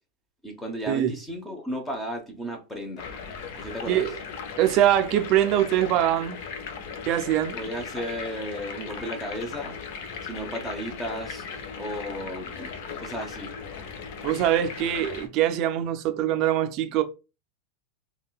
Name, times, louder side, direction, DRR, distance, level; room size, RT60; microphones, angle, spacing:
voice 1, 0.4-3.1 3.6-4.0 7.5-9.8 10.2-11.5 11.7-12.7 13.0-13.5, equal, 5° left, 0.7 m, -34 dB
sound 1, 3.0-15.3, left 6 dB, 60° left, 0.6 m, -38 dB
voice 2, 4.6-6.4 7.1-7.6 14.2-17.0, right 12 dB, 45° right, 0.4 m, -23 dB
3.6 x 2.3 x 2.3 m
supercardioid pair, 145°, 0 cm